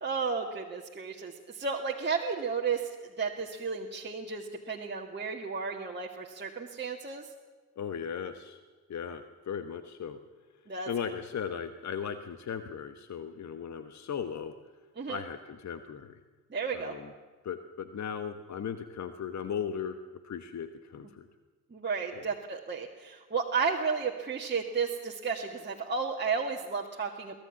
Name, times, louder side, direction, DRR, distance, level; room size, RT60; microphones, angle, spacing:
voice 1, 0.0-2.9 3.2-7.3 10.7-10.9 15.0-15.2 16.5-16.9 21.7-27.4, right 5 dB, 25° right, -1 dB, 2.0 m, -33 dB
voice 2, 7.8-8.6 8.9-10.2 10.9-14.5 15.1-16.2 16.7-17.1 17.4-20.0 20.2-21.3 22.1-22.2, left 7 dB, 35° left, 10 dB, 1.2 m, -37 dB
23.5 x 17.5 x 7.2 m, 1.4 s
figure-of-eight pair, 50°, 46 cm